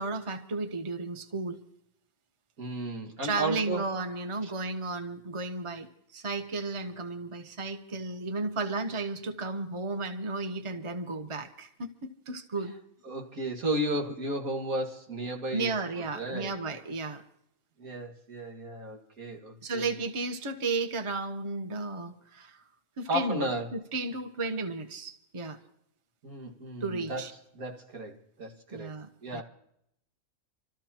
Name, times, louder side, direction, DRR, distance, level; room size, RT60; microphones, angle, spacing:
voice 1, 0.0-1.6 3.2-12.7 15.5-17.2 19.6-22.6 23.0-25.6 26.8-27.3 28.7-29.4, right 3 dB, 25° right, 6 dB, 1.0 m, -34 dB
voice 2, 2.6-3.8 4.4-4.5 13.0-16.6 17.8-19.9 23.1-23.7 26.2-27.2 27.5-28.9 29.2-29.4, right 1 dB, 85° right, 1 dB, 2.4 m, -34 dB
27.5 x 13.5 x 3.0 m, 0.74 s
omnidirectional pair, 1.5 m